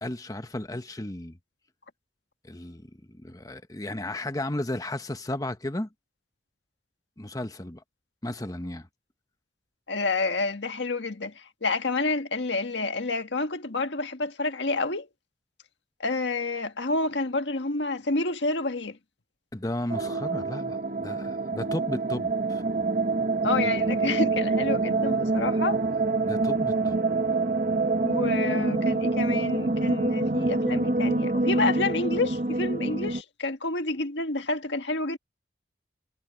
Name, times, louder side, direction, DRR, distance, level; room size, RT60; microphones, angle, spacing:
voice 1, 0.0-1.4 2.4-5.9 7.2-7.8 8.2-8.9 19.5-22.6 26.2-27.0, left 1 dB, 20° left, 1.1 m, -34 dB
voice 2, 9.9-15.1 16.0-19.0 23.4-25.8 28.0-35.2, left 3 dB, 85° left, 1.7 m, -29 dB
sound 1, 19.9-33.2, right 3 dB, 50° right, 1.1 m, -26 dB
head